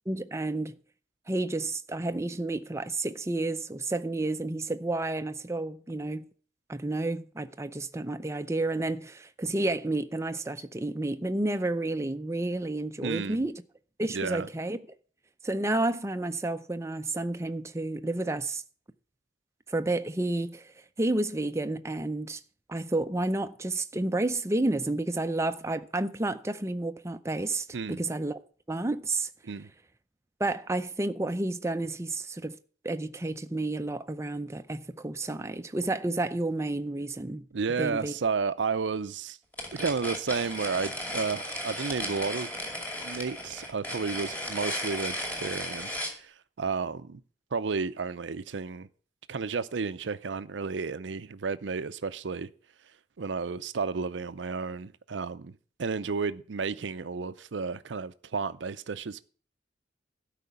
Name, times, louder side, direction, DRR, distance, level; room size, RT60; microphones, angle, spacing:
voice 1, 0.1-0.8 1.3-6.3 6.7-13.6 14.0-14.8 15.4-18.6 19.7-20.7 21.0-22.4 22.7-28.4 28.7-29.3 30.4-32.6 32.8-37.5 37.8-38.1, right 2 dB, 15° right, 0.5 m, -30 dB
voice 2, 13.0-13.4 14.1-14.5 27.7-28.0 29.4-29.7 37.5-39.4 39.7-42.5 43.0-47.2 47.5-48.9 49.3-52.5 53.2-55.5 55.8-59.2, right 5 dB, 85° right, 0.6 m, -32 dB
sound 1, 39.5-46.2, left 1 dB, 10° left, 2.4 m, -35 dB
12.5 x 4.9 x 8.0 m
head